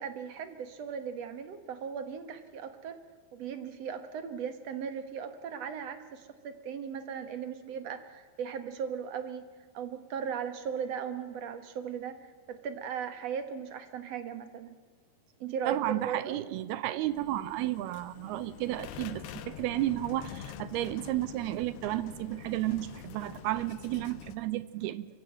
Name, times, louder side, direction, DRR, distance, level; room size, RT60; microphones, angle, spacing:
voice 1, 0.0-3.0 3.3-9.5 9.7-14.7 15.4-16.4, right 7 dB, 55° right, 10 dB, 1.9 m, -37 dB
voice 2, 15.7-25.1, right 15 dB, 85° right, 16 dB, 2.8 m, -32 dB
sound 1, 17.1-24.4, left 8 dB, 90° left, 3.1 m, -46 dB
23.5 x 15.5 x 8.7 m, 1.6 s
omnidirectional pair, 4.5 m